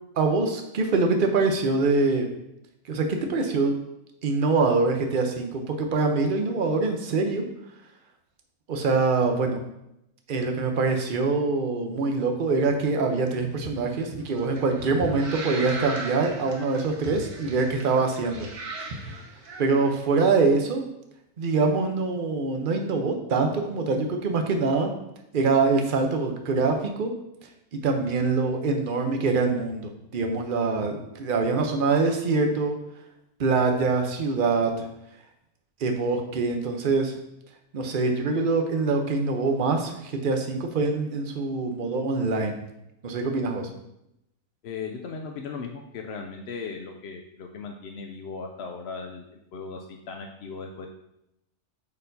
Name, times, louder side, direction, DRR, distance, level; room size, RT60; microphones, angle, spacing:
voice 1, 0.2-2.3 2.9-3.7 4.2-7.4 8.7-9.6 10.3-18.5 19.6-20.9 21.4-24.9 25.3-27.1 27.8-32.8 33.4-34.9 35.8-37.1 37.7-42.6 43.0-43.7, right 3 dB, 45° right, 4 dB, 0.7 m, -24 dB
sound 1, 13.5-19.9, right 2 dB, 85° right, 1.5 m, -37 dB
voice 2, 44.6-49.3 49.5-50.9, left 5 dB, 65° left, 2 dB, 0.6 m, -37 dB
8.2 x 4.4 x 2.7 m, 0.83 s
omnidirectional pair, 1.6 m